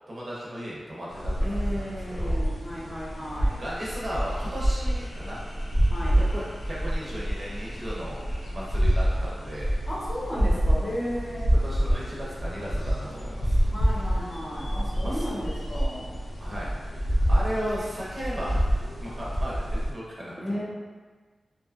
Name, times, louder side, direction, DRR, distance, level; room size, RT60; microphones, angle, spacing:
voice 1, 0.1-2.4 3.6-5.4 6.2-8.2 8.5-9.8 11.6-13.6 15.0-15.3 16.4-16.7 17.0-20.6, equal, 40° right, -6 dB, 0.6 m, -36 dB
sound 1, 1.1-19.9, equal, 85° left, 0.5 m, -27 dB
voice 2, 1.4-3.6 5.9-6.2 9.9-11.5 13.6-16.1 20.4-20.6, equal, 30° left, -8 dB, 0.8 m, -34 dB
2.7 x 2.3 x 2.3 m, 1.4 s
wide cardioid pair, 120°, 0 cm